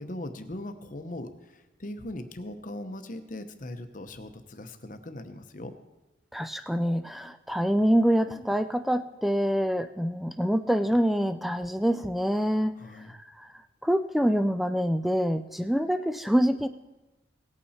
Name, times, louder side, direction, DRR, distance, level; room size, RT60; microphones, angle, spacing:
voice 1, 0.0-5.7 12.8-13.1, left 1 dB, 40° left, 8 dB, 0.9 m, -39 dB
voice 2, 6.3-12.8 13.1-13.5 13.8-16.7, equal, ahead, 11 dB, 0.3 m, -26 dB
18.0 x 8.7 x 4.2 m, 1.0 s
head